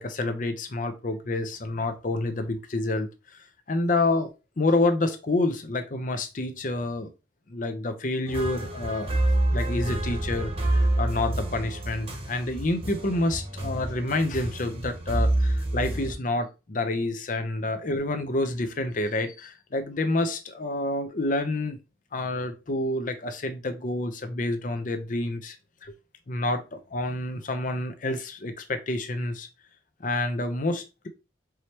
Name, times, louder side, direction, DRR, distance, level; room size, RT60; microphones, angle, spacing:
voice 1, 0.0-3.1 3.7-4.3 4.6-7.1 7.5-9.1 9.5-21.8 22.1-25.6 25.8-25.9 26.3-29.5 30.0-31.1, left 2 dB, 45° left, 0.7 m, -28 dB
sound 1, 8.3-16.1, right 1 dB, 35° right, 1.1 m, -27 dB
4.8 x 3.1 x 2.9 m
head